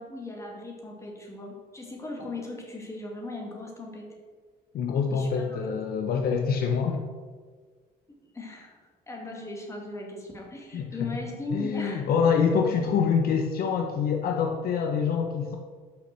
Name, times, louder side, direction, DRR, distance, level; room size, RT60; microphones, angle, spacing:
voice 1, 0.0-4.1 5.1-5.8 8.3-8.8 9.1-12.1, left 2 dB, 15° left, -1 dB, 2.1 m, -38 dB
voice 2, 4.7-7.0 10.7-11.1 11.5-15.6, left 6 dB, 65° left, 3 dB, 0.8 m, -25 dB
5.8 x 5.8 x 6.6 m, 1.5 s
cardioid pair, 110°, 17 cm